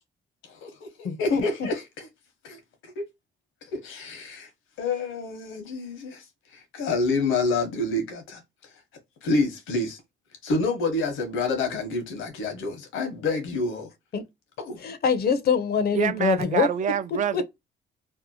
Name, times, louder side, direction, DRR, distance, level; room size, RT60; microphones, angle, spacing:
voice 1, 0.4-2.1 2.4-3.0 3.7-4.5 4.8-6.2 6.5-8.4 9.2-10.0 10.4-13.9 14.6-14.8, left 3 dB, 85° left, 1.0 m, -28 dB
voice 2, 1.0-1.4 14.1-14.2 14.8-16.7 17.1-17.4, left 6 dB, 50° left, 0.6 m, -24 dB
voice 3, 15.9-17.4, right 9 dB, 40° right, 0.4 m, -26 dB
2.7 x 2.1 x 2.6 m
cardioid pair, 90°, 20 cm